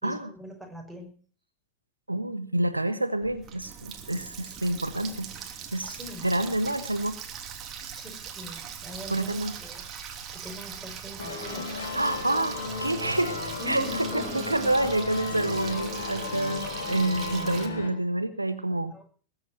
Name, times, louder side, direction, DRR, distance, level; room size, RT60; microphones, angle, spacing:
voice 1, 0.0-1.1 5.8-6.3 7.9-9.9 10.3-11.7 13.6-14.5 18.9-19.0, equal, 5° right, 0 dB, 5.9 m, -42 dB
voice 2, 2.1-5.3 5.7-6.0 6.2-7.2 9.1-9.6 11.9-13.4 13.7-18.9, right 1 dB, 85° right, 10 dB, 1.5 m, -28 dB
Water tap faucet, 3.2-17.7, right 7 dB, 30° right, 3.0 m, -41 dB
sound 1, 11.2-17.9, left 3 dB, 70° left, 4.5 m, -34 dB
21.0 x 8.2 x 7.5 m, 0.43 s
figure-of-eight pair, 90°, 0 cm